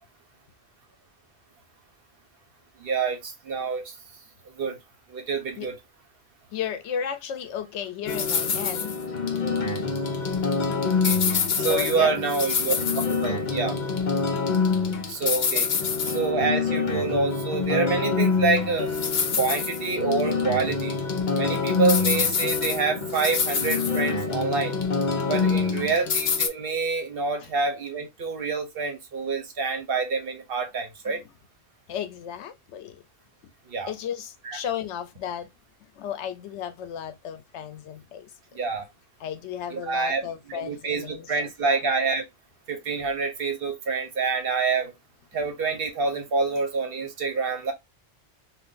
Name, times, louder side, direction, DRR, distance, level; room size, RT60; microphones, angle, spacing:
voice 1, 2.8-3.9 4.6-4.8 5.1-5.7 11.0-11.2 11.5-13.8 15.1-15.7 16.0-18.9 19.4-21.0 21.4-24.8 25.3-31.2 33.7-33.9 34.4-34.6 38.5-38.9 39.7-40.2 40.6-42.2 42.7-44.9 45.3-47.7, right 4 dB, 60° right, 1.0 m, -27 dB
voice 2, 6.5-9.0 11.7-12.2 14.7-15.1 25.5-25.9 27.4-27.5 31.1-31.2 31.9-33.0 33.9-35.5 35.8-38.6 39.2-41.3 41.6-41.8 45.3-45.4, left 9 dB, 85° left, 0.9 m, -34 dB
sound 1, 8.1-26.5, left 5 dB, 50° left, 0.7 m, -25 dB
2.5 x 2.4 x 3.6 m
omnidirectional pair, 1.1 m